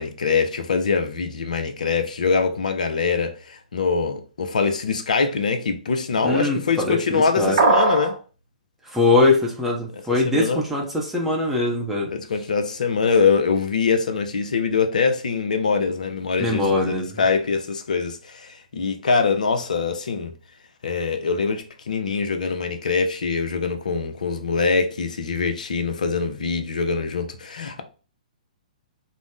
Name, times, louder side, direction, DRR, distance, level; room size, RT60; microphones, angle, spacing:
voice 1, 0.0-8.2 9.9-10.6 12.1-20.3 20.8-27.8, left 5 dB, 65° left, 0.5 m, -23 dB
voice 2, 6.2-7.6 8.9-12.1 16.4-17.1, left 2 dB, 5° right, 0.6 m, -22 dB
sound 1, 7.6-8.2, right 3 dB, 50° right, 0.7 m, -18 dB
2.5 x 2.0 x 3.4 m
figure-of-eight pair, 120°, 4 cm